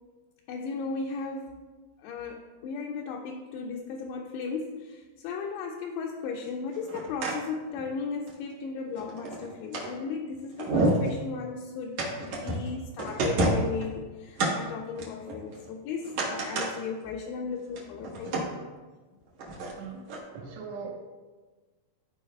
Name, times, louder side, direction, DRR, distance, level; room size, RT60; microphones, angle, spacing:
voice 1, 0.5-1.6 2.0-18.5, left 5 dB, 85° left, 0 dB, 2.5 m, -36 dB
sound 1, 6.7-7.4 7.8-7.9 8.3-8.4 9.0-9.9 10.3-10.4 10.6-11.1 12.0-12.7 13.0-13.8 14.4-14.5 15.0-15.7 16.0-16.7 17.1-17.2 17.6-18.5 19.4-19.7 20.1-20.2, right 2 dB, 65° right, 1.9 m, -29 dB
voice 2, 20.3-20.9, right 5 dB, 90° right, 0 dB, 3.3 m, -39 dB
13.5 x 4.9 x 2.3 m, 1.3 s
omnidirectional pair, 4.9 m